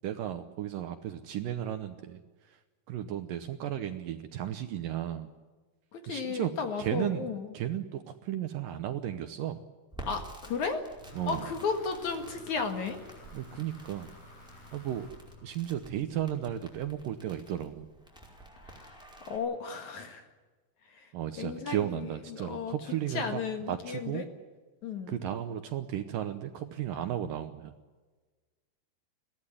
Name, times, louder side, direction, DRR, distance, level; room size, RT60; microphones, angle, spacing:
voice 1, 0.0-2.2 2.5-2.6 2.9-5.3 6.1-6.5 6.8-7.3 7.5-9.6 11.2-11.5 13.3-14.1 14.7-15.1 15.4-17.9 21.1-23.4 23.7-24.2 25.1-27.7, right 11 dB, 70° right, 9 dB, 2.2 m, -34 dB
voice 2, 5.9-7.5 10.1-10.9 11.3-13.0 18.6-20.3 20.9-21.1 21.4-22.8 23.1-24.3 24.8-25.2, left 5 dB, 55° left, 6 dB, 2.6 m, -34 dB
Crackle, 9.9-19.4, right 2 dB, ahead, 4.5 m, -50 dB
sound 1, 11.0-16.0, left 2 dB, 70° left, 9.1 m, -52 dB
22.0 x 16.5 x 9.9 m, 1.3 s
omnidirectional pair, 4.7 m